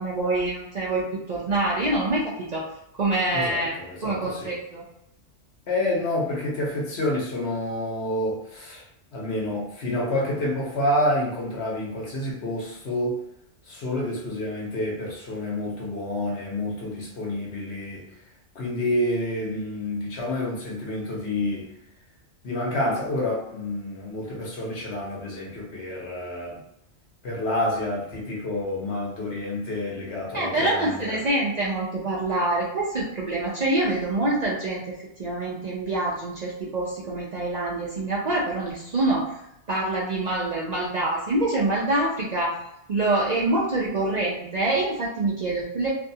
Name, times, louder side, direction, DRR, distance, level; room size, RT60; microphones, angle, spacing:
voice 1, 0.0-2.6 3.0-3.7 4.0-4.8 30.3-39.4 39.7-42.5 42.9-45.9, right 2 dB, 50° right, -6 dB, 0.5 m, -25 dB
voice 2, 3.3-4.6 5.7-8.8 9.1-13.2 13.6-18.1 18.5-21.7 22.4-26.6 27.2-31.2, left 1 dB, 65° left, -3 dB, 1.1 m, -28 dB
2.6 x 2.3 x 2.7 m, 0.82 s
omnidirectional pair, 1.2 m